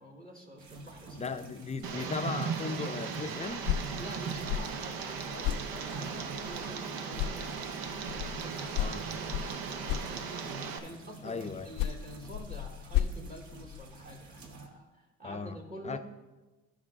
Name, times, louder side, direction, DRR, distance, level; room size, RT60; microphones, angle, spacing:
voice 1, 0.0-1.4 4.0-7.5 7.8-16.0, right 1 dB, 25° right, 1 dB, 1.3 m, -48 dB
sound 1, 0.6-14.7, right 2 dB, 50° right, 1.4 m, -51 dB
voice 2, 1.2-3.7 8.7-9.1 11.2-11.7 15.2-15.6 15.8-16.0, left 4 dB, 20° left, 10 dB, 0.5 m, -37 dB
Tick, 1.8-10.8, right 6 dB, 70° right, 0.9 m, -37 dB
sound 2, 3.4-6.8 7.1-10.7 11.5-14.2, left 11 dB, 65° left, 0.6 m, -36 dB
11.5 x 4.9 x 3.7 m, 1.2 s
supercardioid pair, 80°, 36 cm